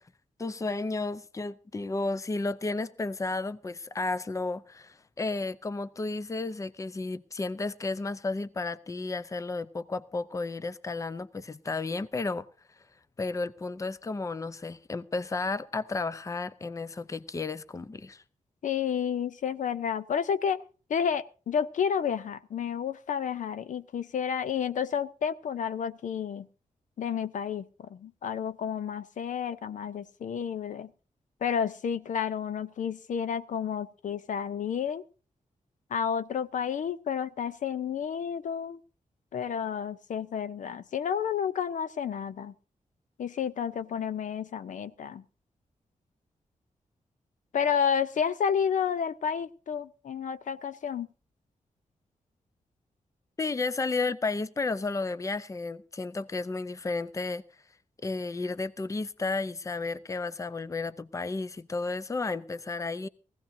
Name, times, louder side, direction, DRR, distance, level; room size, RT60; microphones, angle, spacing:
voice 1, 0.4-12.5 13.2-18.2 53.4-57.4 58.0-63.1, left 3 dB, 25° left, 0.6 m, -32 dB
voice 2, 18.6-20.6 20.9-26.5 27.0-30.9 31.4-35.0 35.9-38.8 39.3-42.5 43.2-45.2 47.5-51.1, left 7 dB, 75° left, 0.6 m, -31 dB
20.0 x 16.0 x 2.7 m
wide cardioid pair, 120°, 13 cm